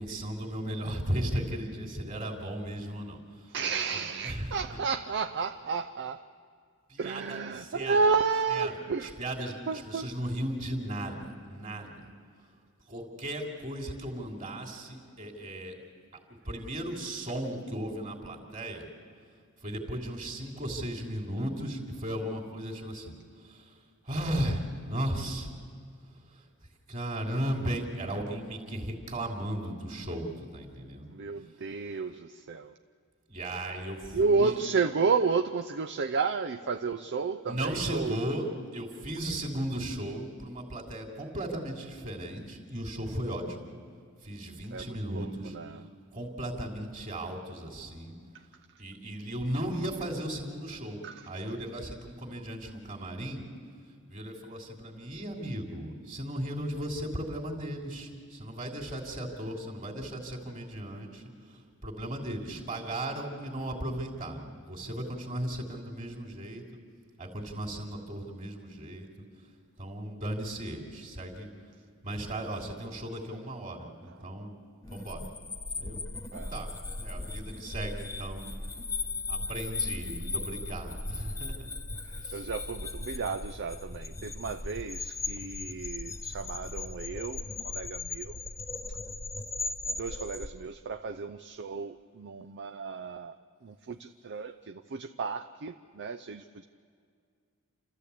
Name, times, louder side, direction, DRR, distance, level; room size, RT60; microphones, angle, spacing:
voice 1, 0.0-3.6 3.9-4.8 6.9-8.0 8.5-12.1 12.9-15.7 16.3-18.9 19.6-23.7 24.1-25.5 26.3-26.4 26.9-31.1 33.3-34.6 37.5-38.4 38.7-43.7 44.2-45.6 46.1-48.2 48.8-53.4 54.1-61.2 61.8-66.6 67.2-69.3 69.8-71.5 72.0-74.5 74.9-75.3 75.8-76.0 76.5-78.4 79.3-81.7 82.2-82.5, right 1 dB, 35° right, 1 dB, 3.0 m, -36 dB
voice 2, 3.5-6.2 7.0-9.1 9.7-10.1 31.1-32.7 34.1-38.2 44.7-45.9 51.0-51.3 76.3-76.5 82.1-88.4 90.0-93.3 93.6-96.6, right 4 dB, 55° right, 8 dB, 0.5 m, -32 dB
sound 1, 74.8-90.5, left 3 dB, 15° left, 0.8 m, -37 dB
29.0 x 13.5 x 8.3 m, 2.2 s
head